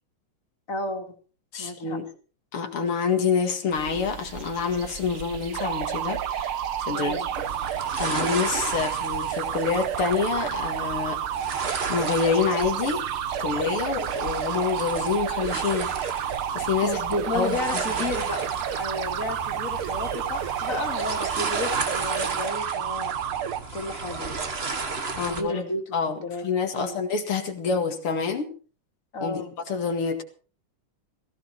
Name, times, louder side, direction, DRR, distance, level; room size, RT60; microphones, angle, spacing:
voice 1, 0.7-1.1 1.6-2.0 6.9-7.3 16.8-23.1 23.7-24.5 25.1-26.4 26.7-27.0 29.1-29.5, left 2 dB, 40° left, 3 dB, 2.9 m, -32 dB
voice 2, 1.5-2.1 2.5-7.2 8.0-11.2 11.9-13.0 13.4-15.9 16.5-18.0 25.2-25.6 25.9-28.5 29.2-30.2, left 5 dB, 85° left, 4 dB, 3.0 m, -27 dB
sound 1, 3.7-22.5, right 8 dB, 55° right, 1.7 m, -42 dB
sound 2, 5.5-23.6, right 9 dB, 80° right, 1.9 m, -30 dB
sound 3, 7.3-25.4, right 4 dB, 30° right, 1.6 m, -34 dB
16.5 x 16.5 x 4.5 m, 0.40 s
omnidirectional pair, 2.3 m